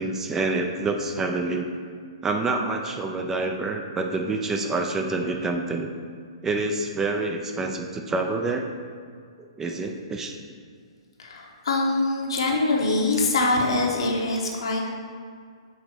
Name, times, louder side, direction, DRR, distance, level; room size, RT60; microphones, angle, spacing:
voice 1, 0.0-1.7 2.2-5.9 6.4-8.7 9.4-10.3, right 3 dB, 15° right, 3 dB, 0.5 m, -27 dB
voice 2, 11.2-14.9, left 2 dB, 65° left, 0 dB, 1.2 m, -24 dB
5.5 x 4.0 x 6.0 m, 2.1 s
figure-of-eight pair, 120°, 3 cm